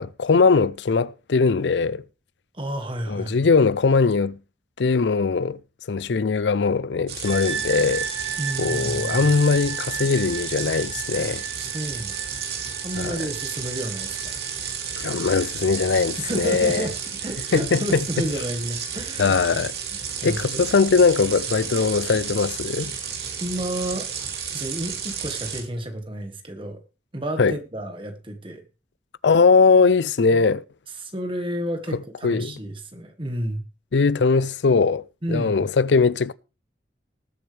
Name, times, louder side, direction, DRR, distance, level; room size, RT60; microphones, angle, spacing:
voice 1, 0.0-2.0 3.1-4.4 4.8-5.6 5.9-8.1 8.6-11.5 13.0-13.1 15.0-16.9 17.5-18.3 19.2-19.7 20.2-22.9 27.4-27.6 29.2-30.6 32.2-32.5 33.9-35.0 35.3-36.3, left 4 dB, 80° left, 0.5 m, -20 dB
voice 2, 2.5-3.3 8.4-9.3 11.5-12.1 12.8-14.3 16.2-16.9 17.2-19.4 19.9-20.4 23.4-24.1 24.5-26.8 27.1-28.6 30.3-30.4 31.0-33.6 35.2-35.6, right 1 dB, 30° right, 1.7 m, -31 dB
sound 1, 7.1-25.6, right 7 dB, 60° right, 3.0 m, -32 dB
sound 2, 7.2-20.1, right 8 dB, 85° right, 4.0 m, -37 dB
20.0 x 7.8 x 3.4 m
head